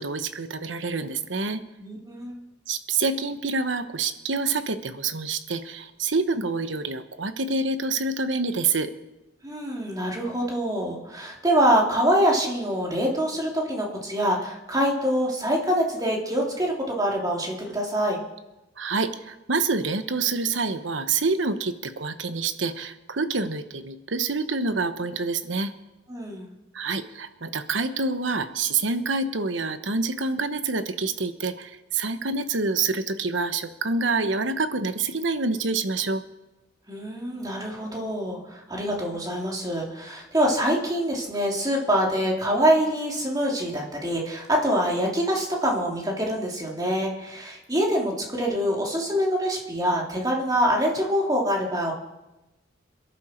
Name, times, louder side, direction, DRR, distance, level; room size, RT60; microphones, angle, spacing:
voice 1, 0.0-1.6 2.7-8.9 18.8-25.7 26.7-36.2, right 4 dB, 75° right, 10 dB, 1.0 m, -27 dB
voice 2, 1.8-2.4 9.4-18.2 26.1-26.5 36.9-51.9, equal, 20° right, -2 dB, 3.0 m, -25 dB
27.0 x 11.5 x 4.5 m, 1.0 s
head